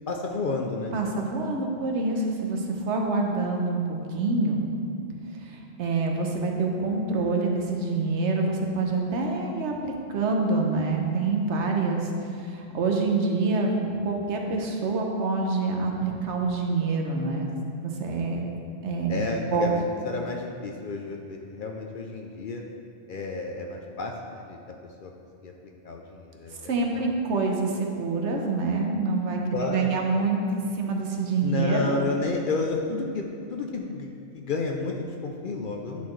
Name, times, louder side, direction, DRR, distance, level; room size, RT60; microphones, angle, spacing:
voice 1, 0.1-0.9 19.1-22.6 23.1-24.6 25.0-25.1 25.4-25.5 25.8-27.0 29.5-30.0 31.4-36.1, left 3 dB, 55° left, 1 dB, 0.6 m, -31 dB
voice 2, 0.9-4.6 5.4-17.5 17.8-18.4 18.8-19.7 26.6-32.0, right 3 dB, 75° right, 1 dB, 1.1 m, -26 dB
10.5 x 4.3 x 3.1 m, 2.6 s
omnidirectional pair, 1.2 m